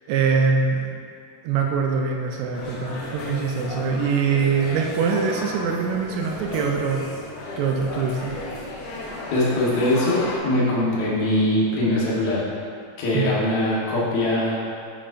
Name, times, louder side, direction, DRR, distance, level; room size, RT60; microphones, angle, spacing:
voice 1, 0.1-0.9 1.4-7.1 7.6-8.3 13.1-13.3, right 5 dB, 80° right, 1 dB, 2.5 m, -23 dB
cafe - takk northern quarter manchester, 2.5-10.4, left 2 dB, 80° left, 1.9 m, -34 dB
voice 2, 9.3-12.5 13.0-14.6, left 1 dB, 65° left, -6 dB, 1.9 m, -22 dB
8.7 x 5.1 x 2.5 m, 2.3 s
omnidirectional pair, 4.9 m